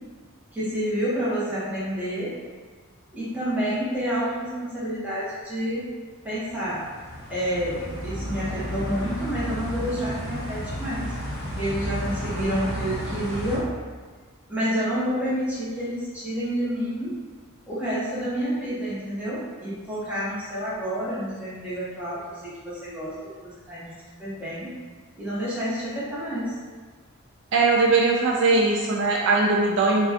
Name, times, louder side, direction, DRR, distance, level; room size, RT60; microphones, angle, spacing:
voice 1, 0.5-2.3 3.1-5.9 6.2-6.8 7.3-11.1 11.6-13.7 14.5-17.1 17.7-23.9 24.2-24.7 25.2-26.5, equal, 5° right, -11 dB, 1.1 m, -29 dB
sound 1, 6.3-13.6, equal, 50° left, 0.9 m, -32 dB
voice 2, 27.5-30.1, right 3 dB, 55° right, -1 dB, 0.3 m, -20 dB
4.0 x 2.4 x 2.8 m, 1.5 s
head